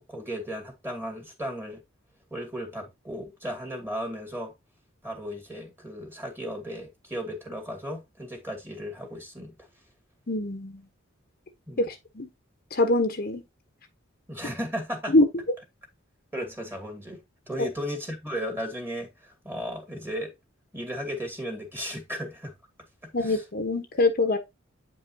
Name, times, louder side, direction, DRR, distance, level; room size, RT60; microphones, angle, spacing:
voice 1, 0.0-1.8 2.3-4.5 5.0-9.7 11.7-11.9 14.3-15.1 16.3-17.2 17.5-20.3 20.7-22.5 23.0-23.4, equal, 10° right, 2.4 m, -35 dB
voice 2, 10.3-10.8 11.8-12.3 12.7-13.4 15.1-15.2 17.6-17.7 23.1-24.4, left 2 dB, 50° left, 1.0 m, -24 dB
8.9 x 5.3 x 2.8 m
head